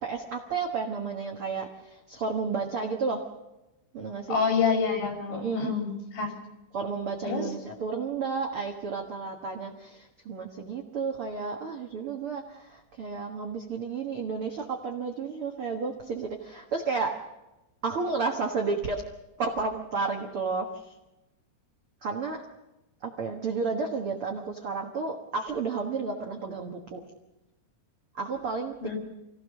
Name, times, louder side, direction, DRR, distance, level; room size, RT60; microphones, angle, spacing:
voice 1, 0.0-3.2 3.9-4.4 5.3-5.7 6.7-17.2 17.8-19.0 19.4-20.9 22.0-22.4 23.0-27.0 28.1-28.7, right 4 dB, 85° right, 2 dB, 1.2 m, -32 dB
voice 2, 4.3-6.4 7.2-7.5 28.8-29.0, left 5 dB, 85° left, 2 dB, 6.0 m, -27 dB
25.5 x 17.5 x 6.4 m, 0.98 s
omnidirectional pair, 5.1 m